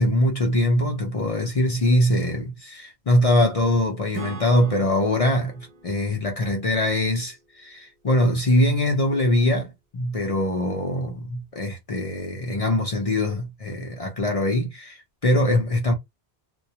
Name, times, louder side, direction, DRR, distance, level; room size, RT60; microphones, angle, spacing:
voice 1, 0.0-15.9, left 1 dB, 40° left, 0.5 m, -22 dB
Acoustic guitar / Strum, 4.1-7.7, right 4 dB, 50° right, 0.5 m, -42 dB
2.2 x 2.2 x 2.7 m
omnidirectional pair, 1.1 m